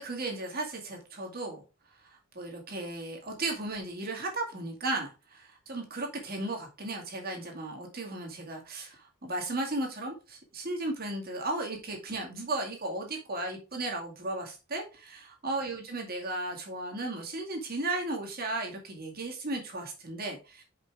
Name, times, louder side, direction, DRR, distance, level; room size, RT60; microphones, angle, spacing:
voice 1, 0.0-1.6 2.0-20.6, right 2 dB, 45° right, 1 dB, 2.2 m, -35 dB
5.5 x 5.4 x 4.7 m, 0.32 s
head